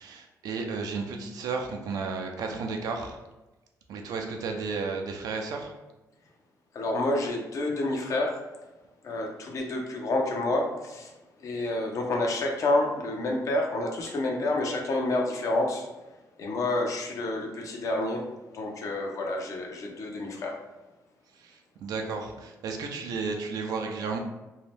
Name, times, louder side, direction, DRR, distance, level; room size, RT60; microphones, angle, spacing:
voice 1, 0.0-3.2 3.9-5.7 21.4-24.2, right 4 dB, 80° right, 3 dB, 0.5 m, -33 dB
voice 2, 6.7-8.4 9.0-11.1 11.4-15.9 16.4-18.2 18.5-20.6, left 2 dB, 55° left, 1 dB, 0.6 m, -28 dB
2.7 x 2.1 x 3.2 m, 1.1 s
cardioid pair, 120°, 6 cm